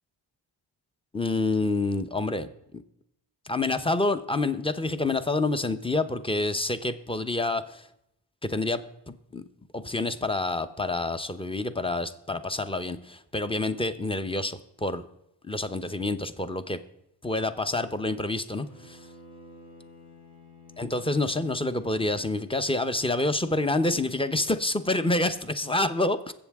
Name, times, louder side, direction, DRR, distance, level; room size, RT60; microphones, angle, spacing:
voice 1, 1.1-2.5 3.5-7.9 8.4-9.4 9.7-15.0 15.4-16.8 17.2-19.0 20.8-26.3, left 2 dB, 10° left, 10 dB, 0.8 m, -28 dB
Bowed string instrument, 18.5-22.9, left 2 dB, 50° left, 2.9 m, -51 dB
22.0 x 7.7 x 3.6 m, 0.79 s
cardioid pair, 60°, 47 cm